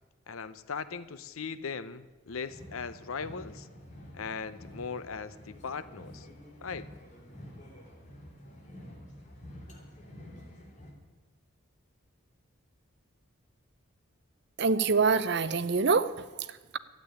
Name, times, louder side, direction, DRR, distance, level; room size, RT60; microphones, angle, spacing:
voice 1, 0.3-3.7 4.1-6.3 6.6-6.9, left 5 dB, 80° left, 14 dB, 0.7 m, -39 dB
sound 1, 2.3-10.9, left 1 dB, 35° left, 2.7 m, -49 dB
voice 2, 14.6-16.8, right 4 dB, 50° right, 14 dB, 0.6 m, -26 dB
13.0 x 8.4 x 9.8 m, 1.3 s
head